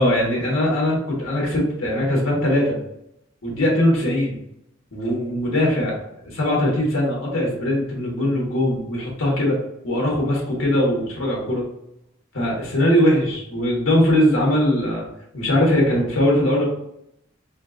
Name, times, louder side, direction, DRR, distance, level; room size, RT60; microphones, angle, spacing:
voice 1, 0.0-2.8 3.4-4.4 4.9-6.0 6.2-9.6 9.8-11.6 12.3-15.0 15.3-16.6, left 1 dB, 85° left, -2 dB, 1.5 m, -20 dB
4.2 x 2.5 x 3.8 m, 0.79 s
head